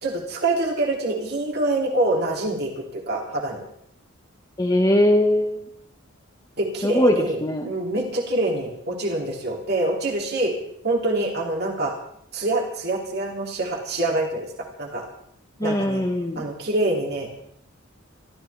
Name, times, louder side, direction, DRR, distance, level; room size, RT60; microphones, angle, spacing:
voice 1, 0.0-3.6 6.6-7.4 7.6-10.5 10.8-11.9 12.3-15.0 15.6-16.0 16.3-17.3, right 2 dB, 50° right, 0 dB, 2.8 m, -25 dB
voice 2, 4.6-5.6 6.8-7.7 15.6-16.4, equal, 20° left, 0 dB, 1.4 m, -20 dB
24.5 x 14.0 x 3.4 m, 0.70 s
head